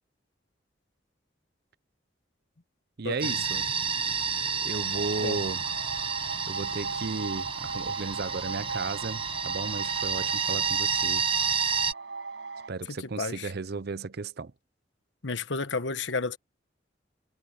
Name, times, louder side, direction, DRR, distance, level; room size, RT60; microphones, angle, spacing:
voice 1, 3.0-3.7 4.6-5.6 6.5-11.2 12.7-14.5, right 4 dB, 60° right, 0.7 m, -34 dB
sound 1, 3.2-11.9, right 6 dB, 30° right, 1.3 m, -30 dB
sound 2, 4.9-12.7, right 4 dB, 75° right, 5.9 m, -38 dB
voice 2, 13.2-13.5 15.2-16.4, left 4 dB, 80° left, 1.2 m, -31 dB
head